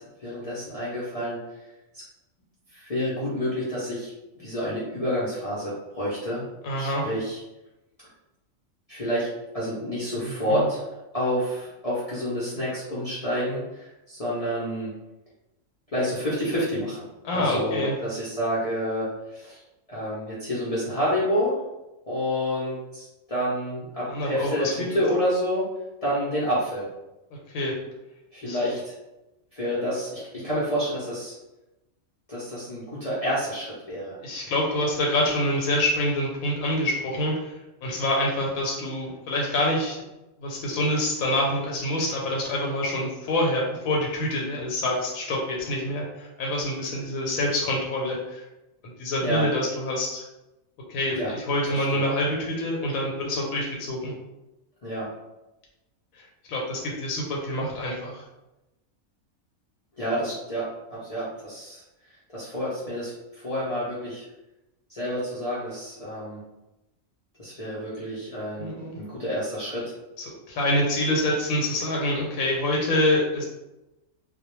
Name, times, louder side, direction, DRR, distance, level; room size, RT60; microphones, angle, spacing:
voice 1, 0.0-1.4 1.9-2.0 2.7-6.5 6.8-7.4 8.9-9.3 9.5-10.8 11.1-14.9 15.9-19.6 19.9-21.5 22.1-25.6 26.0-26.9 28.3-28.9 29.5-31.4 32.3-34.2 49.2-49.4 51.2-51.3 51.7-52.0 54.8-55.1 60.0-61.8 62.3-64.2 64.9-66.4 67.4-69.8, equal, 55° left, -9 dB, 0.4 m, -29 dB
voice 2, 6.6-7.0 10.2-10.7 17.2-18.0 24.1-24.7 27.5-27.8 28.4-28.6 34.2-37.5 37.8-40.0 40.4-48.4 49.0-50.2 50.9-54.1 56.5-58.2 68.6-69.0 70.2-73.4, left 1 dB, 90° left, -1 dB, 1.0 m, -26 dB
2.3 x 2.1 x 2.9 m, 0.99 s
omnidirectional pair, 1.4 m